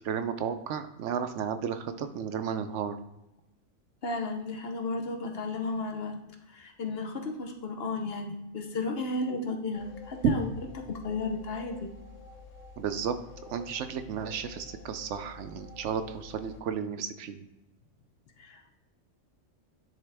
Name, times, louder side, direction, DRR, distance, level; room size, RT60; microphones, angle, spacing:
voice 1, 0.0-3.0 10.2-10.3 12.8-13.1 13.5-17.4, right 7 dB, 75° right, 10 dB, 0.9 m, -32 dB
voice 2, 4.0-6.2 6.5-10.5 10.9-11.9 18.4-18.8, left 3 dB, 55° left, 4 dB, 1.0 m, -34 dB
sound 1, 9.7-16.6, left 4 dB, 85° left, 1.1 m, -49 dB
10.0 x 3.6 x 3.4 m, 0.90 s
omnidirectional pair, 1.3 m